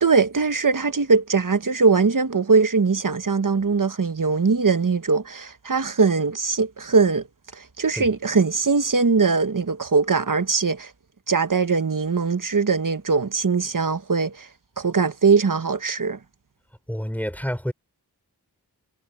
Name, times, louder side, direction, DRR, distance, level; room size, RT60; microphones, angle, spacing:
voice 1, 0.0-7.2 7.5-10.9 11.3-14.5 14.8-16.2, right 4 dB, 55° right, 1.2 m, -21 dB
voice 2, 16.9-17.7, equal, 5° left, 4.4 m, -28 dB
wide cardioid pair, 45°, 39 cm